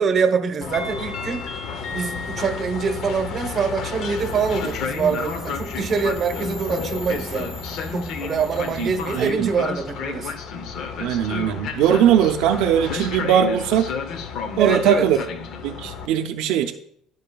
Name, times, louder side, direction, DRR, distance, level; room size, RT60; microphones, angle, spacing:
voice 1, 0.0-1.5 1.9-7.6 7.9-10.3 14.6-15.1, right 5 dB, 35° right, 7 dB, 0.9 m, -24 dB
Train, 0.6-16.1, left 5 dB, 65° left, 0.7 m, -31 dB
sound 1, 4.2-9.3, left 1 dB, 25° left, 1.3 m, -37 dB
voice 2, 8.8-9.5 11.0-13.9 14.6-15.2 15.6-16.7, right 9 dB, 80° right, 5 dB, 0.5 m, -20 dB
12.0 x 5.4 x 2.3 m, 0.68 s
cardioid pair, 125°, 0 cm